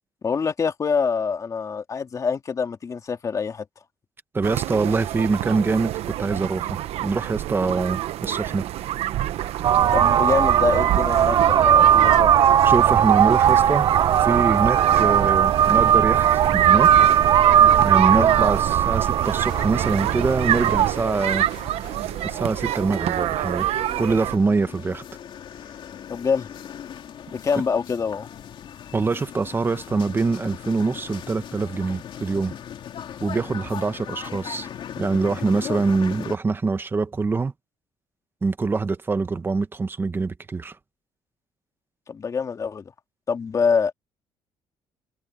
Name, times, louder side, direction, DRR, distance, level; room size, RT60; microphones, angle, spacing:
voice 1, 0.2-3.7 9.9-12.3 18.2-18.3 26.1-26.5 27.3-28.3 42.1-42.8 43.3-43.9, left 5 dB, 30° left, 2.7 m, -25 dB
voice 2, 4.3-8.6 12.6-13.9 14.2-16.9 17.8-21.5 22.2-23.7 24.0-25.0 28.9-32.6 33.2-34.7 35.0-37.5 38.4-40.8, right 4 dB, 20° right, 1.2 m, -24 dB
sound 1, 4.4-24.4, right 13 dB, 70° right, 1.1 m, -27 dB
sound 2, 9.6-20.9, right 10 dB, 45° right, 0.3 m, -18 dB
sound 3, 19.4-36.4, left 9 dB, 50° left, 2.7 m, -39 dB
cardioid pair, 135°, 11 cm